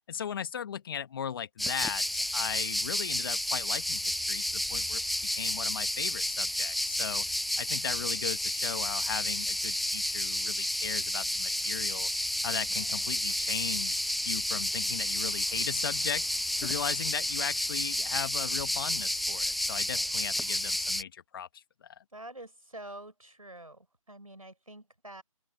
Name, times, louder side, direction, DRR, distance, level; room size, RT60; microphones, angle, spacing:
voice 1, 0.1-5.0 5.3-7.2 7.6-12.1 12.4-16.3 16.6-21.9, left 8 dB, 40° left, 1.4 m, -37 dB
sound 1, 1.6-21.0, left 1 dB, ahead, 0.4 m, -31 dB
voice 2, 22.1-25.2, right 1 dB, 90° right, 5.0 m, -47 dB
open air
figure-of-eight pair, 145°, 18 cm